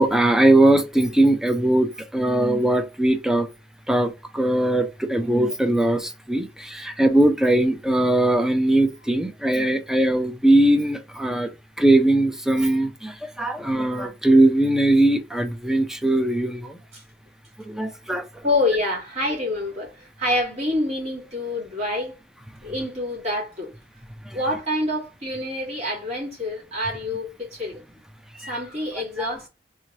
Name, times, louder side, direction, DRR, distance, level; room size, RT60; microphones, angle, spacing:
voice 1, 0.0-3.5 3.9-11.5 11.8-16.7 17.7-18.2 28.4-28.5, right 1 dB, 5° right, 0.5 m, -20 dB
voice 2, 18.4-22.1 22.6-23.7 24.3-27.8 28.5-29.5, left 1 dB, 40° right, 2.4 m, -27 dB
3.7 x 3.1 x 2.7 m
head